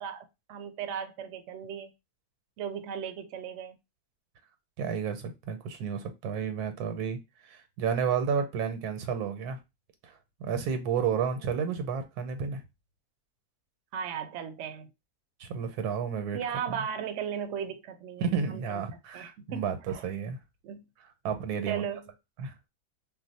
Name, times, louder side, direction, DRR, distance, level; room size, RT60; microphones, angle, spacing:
voice 1, 0.0-1.9 2.6-3.8 11.4-11.5 13.9-14.9 16.3-18.8 19.1-20.0 20.6-20.9 21.7-22.1, right 8 dB, 65° right, 0.7 m, -37 dB
voice 2, 4.8-7.2 7.5-9.6 10.0-10.1 10.4-12.6 15.4-16.4 16.7-16.8 18.2-20.4 21.2-21.9 22.4-22.5, right 6 dB, 85° right, 1.1 m, -31 dB
2.5 x 2.0 x 3.9 m
omnidirectional pair, 1.6 m